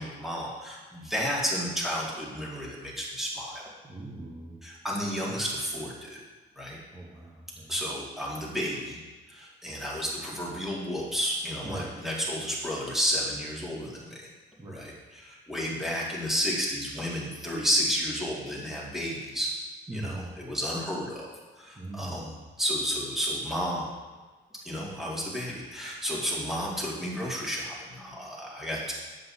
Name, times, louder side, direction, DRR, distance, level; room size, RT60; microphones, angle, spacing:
voice 1, 0.0-3.6 4.6-6.2 6.6-6.8 7.7-9.0 9.3-14.3 14.7-19.5 19.9-21.3 21.6-22.3 22.6-23.9 24.7-28.9, equal, ahead, -5 dB, 2.3 m, -32 dB
voice 2, 3.8-4.6 5.2-5.5 6.9-7.7 11.6-12.0 14.6-14.9 19.9-20.3 21.7-22.5, right 2 dB, 20° right, -4 dB, 1.2 m, -40 dB
8.1 x 7.5 x 2.8 m, 1.3 s
cardioid pair, 90°, 20 cm